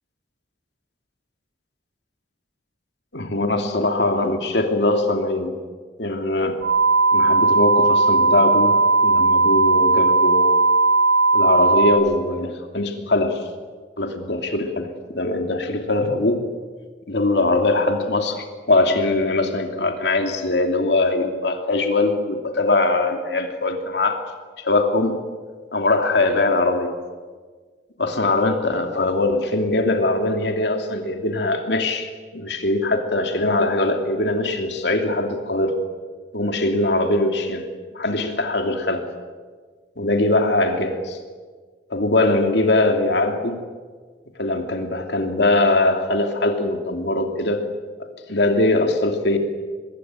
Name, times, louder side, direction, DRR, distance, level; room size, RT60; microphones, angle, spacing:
voice 1, 3.1-5.6 6.0-6.6 7.1-10.6 11.3-13.5 14.0-16.5 17.1-24.2 24.6-25.2 25.7-26.9 28.0-35.7 36.3-37.7 37.9-39.1 40.0-41.2 41.9-43.6 44.4-47.6 48.3-49.4, left 2 dB, 70° left, 4 dB, 2.8 m, -21 dB
sound 1, 6.6-11.9, right 3 dB, 60° right, 5.8 m, -17 dB
24.5 x 22.5 x 8.9 m, 1.5 s
head